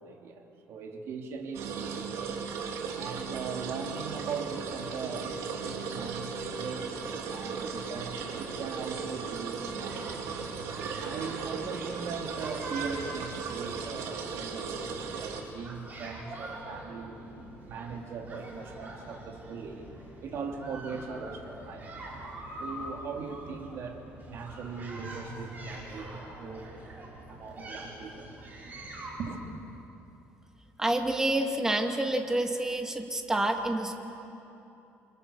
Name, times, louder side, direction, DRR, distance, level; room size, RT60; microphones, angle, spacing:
voice 1, 0.0-2.3 3.0-5.4 5.6-10.3 11.0-17.2 17.7-19.9 20.2-21.9 22.6-24.0 24.3-26.7 27.3-28.3 29.2-29.4, right 5 dB, 55° right, 2 dB, 3.3 m, -40 dB
sound 1, 1.5-15.4, right 5 dB, 75° right, 3.1 m, -36 dB
sound 2, 9.7-29.1, right 2 dB, 35° right, 7.0 m, -44 dB
voice 2, 30.8-34.0, right 1 dB, 10° right, 4 dB, 2.3 m, -28 dB
29.5 x 25.0 x 7.3 m, 3.0 s
cardioid pair, 130°, 5 cm